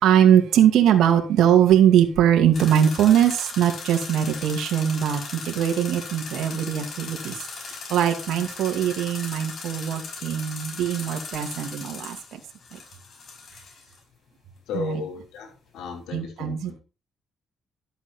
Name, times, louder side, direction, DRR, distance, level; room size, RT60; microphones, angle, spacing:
voice 1, 0.0-7.4 7.6-12.4 12.7-12.8 14.7-15.0 16.1-16.8, right 9 dB, 80° right, 2.3 m, -21 dB
sound 1, 2.5-14.0, left 4 dB, 55° left, 6.3 m, -38 dB
voice 2, 14.7-16.8, left 5 dB, 85° left, 4.7 m, -35 dB
12.5 x 8.1 x 4.4 m
cardioid pair, 90°, 0 cm